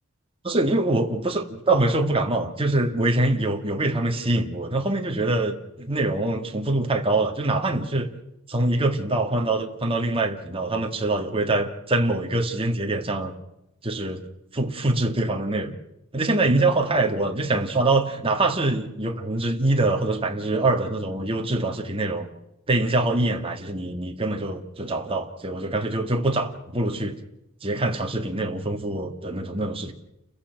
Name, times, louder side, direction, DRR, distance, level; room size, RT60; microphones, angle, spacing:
voice 1, 0.4-8.1 8.5-13.3 13.8-14.2 14.5-15.7 16.1-22.3 22.7-27.2 27.6-29.9, right 2 dB, 25° right, 1.9 m, -24 dB
30.0 x 16.0 x 6.0 m
head